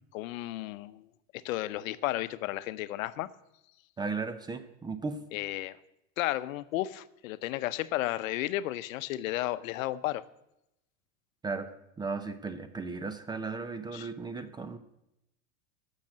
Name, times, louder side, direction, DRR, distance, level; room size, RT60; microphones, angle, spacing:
voice 1, 0.1-1.1 1.4-3.3 5.3-5.8 6.2-10.2 13.9-14.1, left 15 dB, 85° left, 15 dB, 0.8 m, -33 dB
voice 2, 4.0-5.2 11.4-11.7 12.0-14.8, right 4 dB, 10° right, 11 dB, 0.4 m, -36 dB
13.0 x 6.5 x 7.5 m, 0.86 s
supercardioid pair, 140°, 39 cm